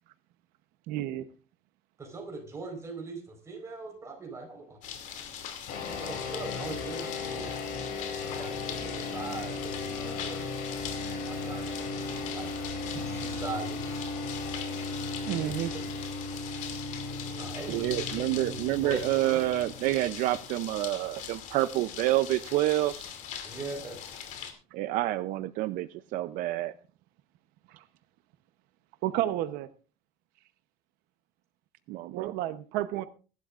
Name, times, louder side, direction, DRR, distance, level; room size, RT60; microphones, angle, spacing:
voice 1, 0.9-1.3 15.3-15.7 27.7-27.8 29.0-29.7 32.1-33.1, right 13 dB, 90° right, 0.9 m, -31 dB
voice 2, 2.0-4.8 5.9-7.5 8.2-10.5 11.2-12.5 12.9-14.0 15.4-15.8 17.3-18.0 18.3-18.6 18.8-19.4 23.4-24.0, right 3 dB, 20° right, 4.4 m, -41 dB
sound 1, 4.8-24.5, left 8 dB, 60° left, 2.6 m, -42 dB
sound 2, 5.7-20.5, left 3 dB, 80° left, 6.6 m, -36 dB
voice 3, 17.7-23.1 24.7-26.7 31.9-32.3, right 16 dB, 65° right, 0.6 m, -28 dB
22.0 x 12.0 x 2.5 m
cardioid pair, 170°, 15 cm